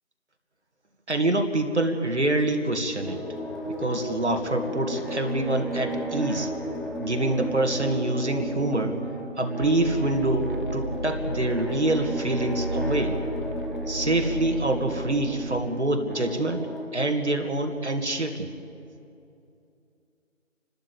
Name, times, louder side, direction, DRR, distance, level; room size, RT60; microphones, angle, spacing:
voice 1, 1.1-3.2 3.8-6.5 7.0-9.0 9.4-13.2 13.9-18.5, right 2 dB, 55° right, 5 dB, 2.1 m, -26 dB
sound 1, 3.0-16.9, equal, ahead, 0.7 m, -34 dB
sound 2, 9.6-15.6, right 1 dB, 40° right, 0.7 m, -34 dB
30.0 x 13.0 x 8.6 m, 2.7 s
figure-of-eight pair, 165°, 40 cm